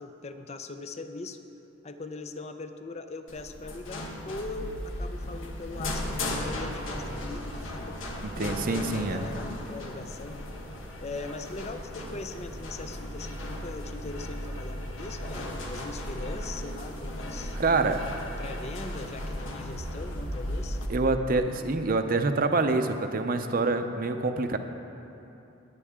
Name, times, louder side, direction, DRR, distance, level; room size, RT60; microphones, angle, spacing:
voice 1, 0.0-1.4 1.8-10.5 11.0-18.0 18.2-20.8, left 3 dB, 35° left, 8 dB, 0.5 m, -40 dB
sound 1, 3.3-20.9, left 1 dB, 90° left, 1.3 m, -36 dB
voice 2, 8.2-9.2 17.6-18.0 20.9-24.6, right 3 dB, 50° right, 7 dB, 0.7 m, -26 dB
18.5 x 9.2 x 3.7 m, 2.9 s
head